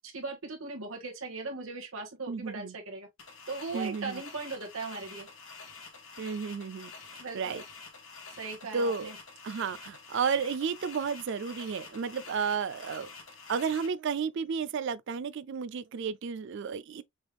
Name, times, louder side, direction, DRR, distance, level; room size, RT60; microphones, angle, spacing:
voice 1, 0.1-3.1 3.5-5.3 7.2-7.6 8.4-9.1, right 3 dB, 90° right, 1.8 m, -38 dB
voice 2, 2.3-2.8 3.7-4.2 6.2-6.9 7.3-7.6 8.7-9.1 9.4-13.1 13.5-17.0, right 6 dB, 60° right, 0.4 m, -32 dB
sound 1, 3.2-13.9, left 4 dB, 80° left, 2.1 m, -48 dB
6.1 x 3.5 x 2.3 m
head